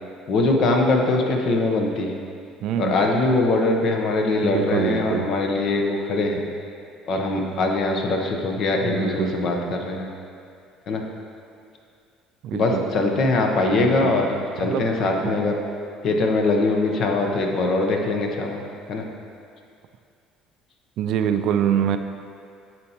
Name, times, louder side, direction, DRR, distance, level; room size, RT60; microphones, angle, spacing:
voice 1, 0.3-2.1 2.8-6.4 7.1-10.1 10.9-11.0 12.5-15.6 16.0-18.6 18.9-19.0, left 2 dB, 60° left, 2 dB, 0.9 m, -22 dB
voice 2, 2.6-3.0 4.4-5.3 8.8-9.4 12.4-12.9 13.7-14.2 14.6-14.9 15.2-15.4 21.0-22.0, right 9 dB, 65° right, 9 dB, 0.3 m, -25 dB
10.5 x 4.3 x 2.9 m, 2.4 s
supercardioid pair, 75°, 0 cm